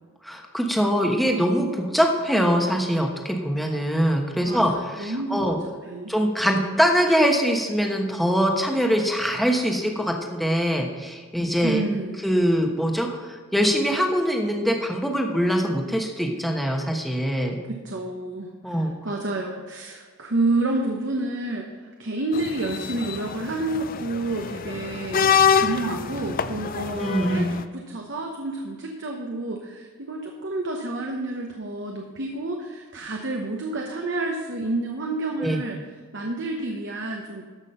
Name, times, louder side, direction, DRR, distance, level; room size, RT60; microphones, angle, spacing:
voice 1, 0.2-5.6 6.1-11.8 12.2-17.6 18.6-18.9 27.0-27.6 35.4-35.6, equal, ahead, 1 dB, 1.1 m, -23 dB
voice 2, 4.5-5.5 5.8-6.1 11.6-12.2 17.7-21.7 22.0-35.8 36.1-37.4, right 2 dB, 60° right, 1 dB, 1.0 m, -29 dB
sound 1, 22.3-27.6, left 7 dB, 40° left, 0.4 m, -25 dB
13.5 x 6.0 x 5.6 m, 1.5 s
head